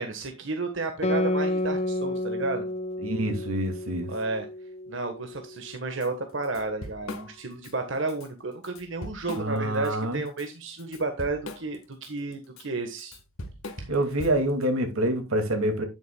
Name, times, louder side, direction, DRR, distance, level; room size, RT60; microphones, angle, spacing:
voice 1, 0.0-2.7 4.1-4.5 4.9-13.2, right 3 dB, 65° right, 1.4 m, -32 dB
Guitar, 1.0-6.0, left 1 dB, 30° left, 0.7 m, -30 dB
voice 2, 3.0-4.1 9.3-10.2 13.9-15.8, right 1 dB, 85° right, 2.4 m, -26 dB
Drum kit / Drum, 6.0-6.1 6.4-7.7 8.1-8.3 8.6-9.9 10.3-14.6, left 1 dB, 80° left, 1.6 m, -40 dB
9.9 x 9.0 x 2.3 m
head